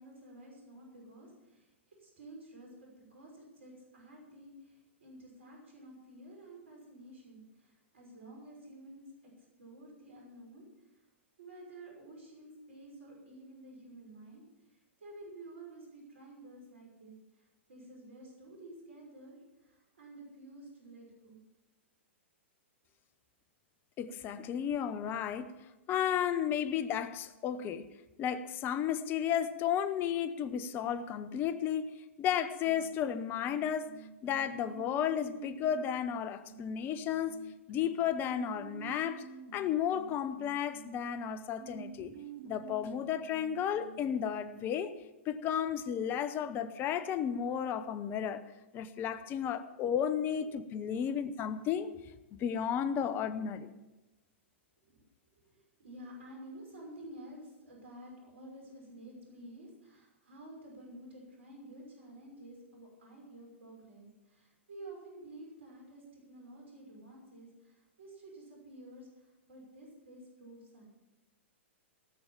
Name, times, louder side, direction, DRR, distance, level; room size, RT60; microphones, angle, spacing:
voice 1, 0.0-9.0 9.6-11.1 11.4-21.4 54.9-55.0 55.4-70.8, right 1 dB, 75° right, -1 dB, 5.8 m, -51 dB
voice 2, 24.0-25.5 25.9-27.9 28.2-31.9 32.2-33.9 34.2-37.4 37.7-39.2 39.5-42.1 42.4-44.9 45.3-48.4 48.7-51.9 52.3-53.7, left 9 dB, 30° left, 14 dB, 0.8 m, -33 dB
sound 1, 32.6-44.7, right 9 dB, 55° right, 1.0 m, -50 dB
17.5 x 7.1 x 7.2 m, 1.1 s
hypercardioid pair, 110°, 7 cm